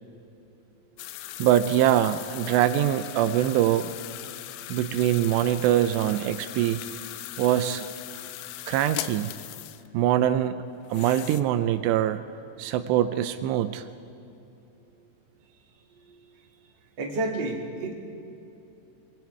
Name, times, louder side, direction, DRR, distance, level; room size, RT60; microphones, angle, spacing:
sound 1, 1.0-9.9 10.8-11.4, left 15 dB, 80° left, 2.6 m, -39 dB
voice 1, 1.4-4.0 4.7-6.8 7.4-7.9 8.7-9.3 9.9-12.2 12.6-13.8, right 11 dB, 85° right, 11 dB, 2.8 m, -23 dB
voice 2, 17.0-17.9, right 2 dB, 35° right, -1 dB, 2.3 m, -30 dB
24.0 x 24.0 x 4.7 m, 2.8 s
omnidirectional pair, 4.9 m